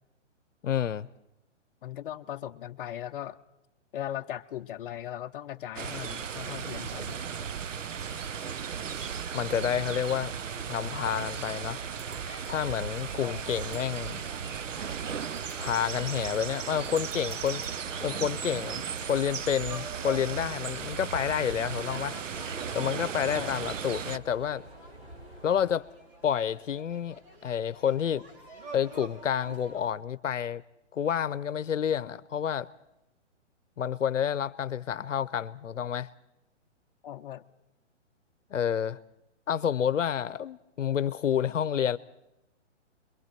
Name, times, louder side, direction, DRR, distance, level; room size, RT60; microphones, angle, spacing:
voice 1, 0.6-1.1 9.3-10.3 10.7-11.8 12.5-14.2 15.6-17.6 18.0-22.2 22.7-24.6 25.4-25.9 26.2-27.2 27.4-28.2 28.7-30.6 30.9-32.7 33.8-36.1 38.5-39.0 39.5-42.0, left 8 dB, 85° left, 0.8 m, -29 dB
voice 2, 1.8-3.4 3.9-7.2 13.2-13.6 23.3-23.6 37.0-37.4, left 11 dB, 45° left, 0.8 m, -38 dB
sound 1, 5.8-24.2, right 7 dB, 90° right, 0.8 m, -36 dB
sound 2, 10.5-29.9, right 1 dB, 45° right, 4.5 m, -49 dB
sound 3, 10.7-25.8, right 1 dB, 25° right, 3.7 m, -49 dB
27.5 x 22.5 x 4.5 m
hypercardioid pair, 150°, 37 cm